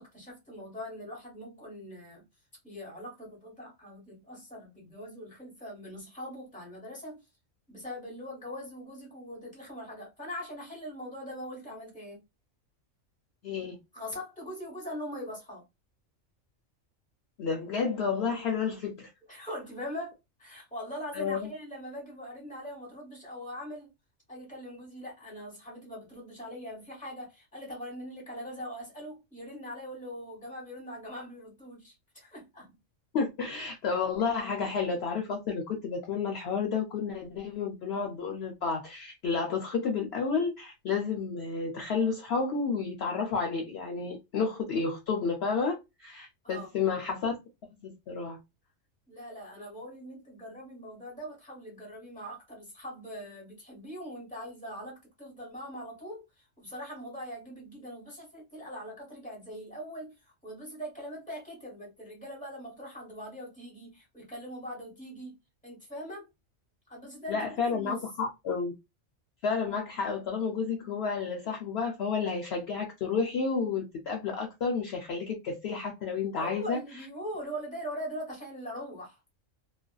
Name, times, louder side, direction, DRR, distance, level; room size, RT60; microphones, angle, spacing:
voice 1, 0.0-2.2 2.6-7.2 7.7-12.2 13.9-15.6 19.3-23.9 24.3-32.7 46.4-46.7 49.1-65.4 65.6-66.3 66.9-68.0 76.4-79.2, equal, 5° left, 1.1 m, -42 dB
voice 2, 13.4-13.8 17.4-19.1 21.1-21.5 33.1-47.4 47.8-48.4 67.3-68.7 69.4-76.8, left 5 dB, 65° left, 0.7 m, -31 dB
2.4 x 2.2 x 2.3 m
omnidirectional pair, 1.3 m